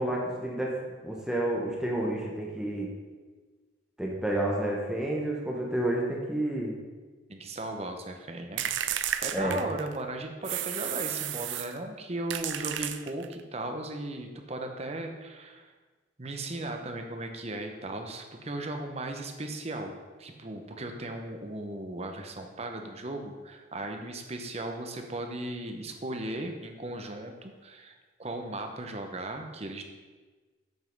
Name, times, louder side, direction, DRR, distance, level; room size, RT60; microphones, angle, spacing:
voice 1, 0.0-2.9 4.0-6.7 9.3-9.6, right 1 dB, 5° right, -3 dB, 1.0 m, -30 dB
voice 2, 7.3-15.7 16.2-27.9 28.2-29.9, right 2 dB, 35° right, 4 dB, 0.8 m, -37 dB
sound 1, 8.6-10.0 10.4-11.8 12.3-13.4, right 11 dB, 75° right, 0.4 m, -32 dB
8.1 x 5.5 x 5.3 m, 1.3 s
head